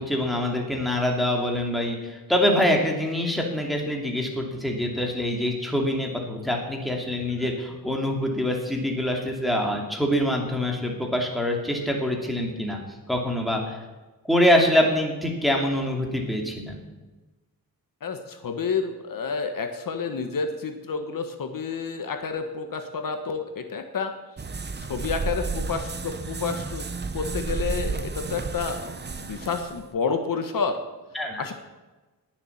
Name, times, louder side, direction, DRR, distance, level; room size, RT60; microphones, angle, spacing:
voice 1, 0.0-12.8 13.1-13.8 14.3-16.8 31.1-31.5, left 1 dB, ahead, 0 dB, 2.6 m, -25 dB
voice 2, 18.0-24.1 24.9-26.9 27.1-28.8 29.2-30.8 31.4-31.5, left 5 dB, 60° left, 6 dB, 1.4 m, -29 dB
sound 1, 24.4-29.9, right 4 dB, 30° right, 0.8 m, -32 dB
20.0 x 7.3 x 7.2 m, 1.2 s
wide cardioid pair, 150°, 37 cm